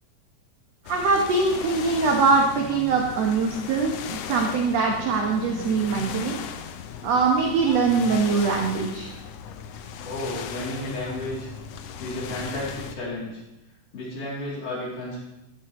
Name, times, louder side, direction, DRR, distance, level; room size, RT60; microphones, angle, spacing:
sound 1, 0.8-12.9, left 7 dB, 90° left, 1.4 m, -37 dB
voice 1, 0.9-6.4 7.0-9.1, right 4 dB, 65° right, 1 dB, 1.9 m, -22 dB
voice 2, 10.0-11.5 12.0-13.4 13.9-15.2, left 1 dB, 65° left, -5 dB, 4.4 m, -32 dB
13.5 x 13.5 x 3.1 m, 0.95 s
omnidirectional pair, 3.9 m